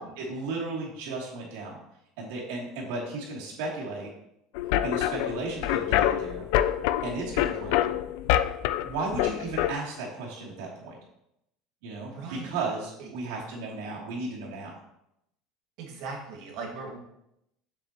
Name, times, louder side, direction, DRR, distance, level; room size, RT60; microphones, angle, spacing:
voice 1, 0.3-1.8 2.2-4.1 4.8-6.5 7.0-7.9 8.8-10.9 11.8-14.8, right 3 dB, 90° right, -3 dB, 2.8 m, -35 dB
sound 1, 4.6-9.7, left 12 dB, 65° left, 0.3 m, -26 dB
voice 2, 12.1-12.6 13.0-13.1 15.8-17.0, right 4 dB, 55° right, 0 dB, 1.9 m, -39 dB
7.3 x 7.2 x 3.0 m, 0.81 s
cardioid pair, 175°, 0 cm